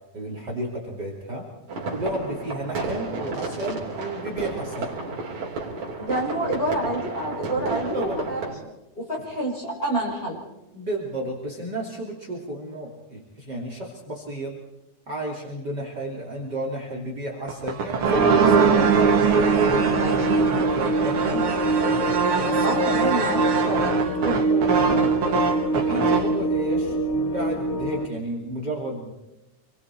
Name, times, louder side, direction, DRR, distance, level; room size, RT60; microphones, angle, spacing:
voice 1, 0.1-1.5 1.9-4.9 7.7-8.2 10.7-14.6 15.1-18.8 21.0-21.5 22.4-22.8 23.1-23.3 23.6-25.2 25.7-29.1, right 1 dB, 35° right, 0 dB, 3.2 m, -32 dB
sound 1, 1.7-8.5, right 3 dB, 65° right, 4.8 m, -32 dB
voice 2, 6.0-8.4 9.0-10.4 19.9-20.5 22.6-23.4, right 1 dB, 15° left, -2 dB, 5.5 m, -28 dB
sound 2, 17.5-26.4, right 5 dB, 50° right, 2.4 m, -22 dB
sound 3, 18.1-28.1, right 2 dB, 55° left, 0.9 m, -25 dB
27.0 x 23.0 x 4.4 m, 0.97 s
omnidirectional pair, 3.5 m